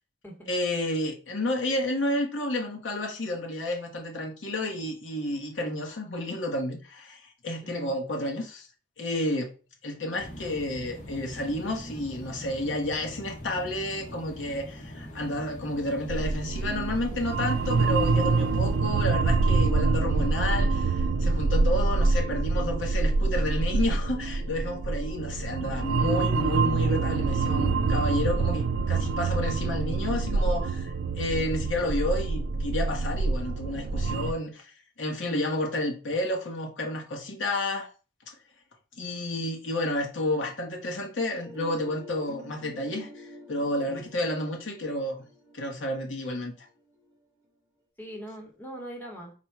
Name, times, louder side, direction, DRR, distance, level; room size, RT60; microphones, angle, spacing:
voice 1, 0.5-8.7 9.0-9.5 9.8-34.7 35.0-37.9 39.0-45.2 45.5-46.5, left 1 dB, 90° left, 0.9 m, -31 dB
voice 2, 7.6-8.0 35.2-35.4 43.9-44.3 48.0-49.3, right 1 dB, 10° left, 0.9 m, -42 dB
electric generator, 10.1-18.8, equal, 40° left, 0.7 m, -42 dB
sound 1, 16.1-34.3, right 3 dB, 85° right, 0.4 m, -26 dB
Zen Plucked Chords Riff, 41.4-47.2, equal, 15° right, 1.1 m, -47 dB
4.2 x 2.1 x 4.4 m
head